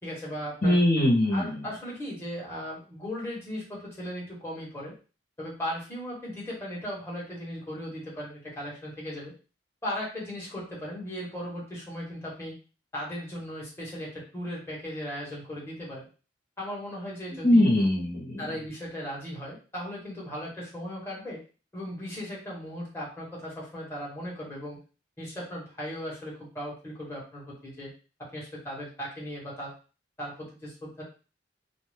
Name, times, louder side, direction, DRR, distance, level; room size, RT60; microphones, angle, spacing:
voice 1, 0.0-0.8 1.3-4.9 5.4-9.3 9.8-12.6 12.9-16.1 16.6-17.7 18.4-21.4 21.7-24.8 25.2-27.9 28.2-29.7 30.2-31.0, equal, 15° left, -5 dB, 1.2 m, -37 dB
voice 2, 0.6-1.6 17.4-18.5, left 1 dB, 45° left, -4 dB, 1.0 m, -22 dB
2.5 x 2.3 x 3.4 m, 0.35 s
head